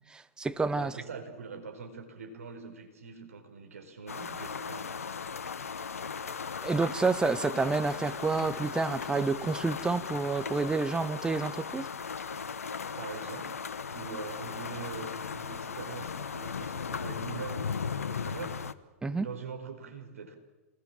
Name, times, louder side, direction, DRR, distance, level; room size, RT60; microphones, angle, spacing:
voice 1, 0.1-0.9 6.6-11.9 19.0-19.3, right 4 dB, 10° right, 1.1 m, -29 dB
voice 2, 0.7-5.1 13.0-13.5 13.9-18.6 19.0-20.4, right 5 dB, 70° right, 4.9 m, -43 dB
sound 1, 4.1-18.7, left 6 dB, 75° left, 1.1 m, -37 dB
28.0 x 20.0 x 7.5 m
figure-of-eight pair, 100°, 8 cm